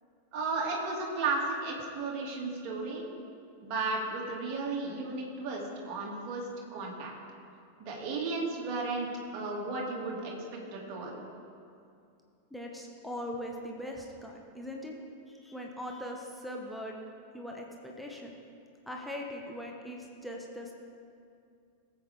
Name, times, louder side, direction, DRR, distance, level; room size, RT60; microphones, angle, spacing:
voice 1, 0.3-3.1 3.6-6.4 6.7-7.1 7.8-9.1 9.3-10.3 10.7-11.2, right 3 dB, 40° right, -2 dB, 2.4 m, -34 dB
voice 2, 12.5-14.9 15.3-17.0 17.3-18.3 18.9-20.7, left 1 dB, ahead, -1 dB, 1.2 m, -40 dB
18.0 x 8.1 x 3.6 m, 2.5 s
figure-of-eight pair, 90°, 0 cm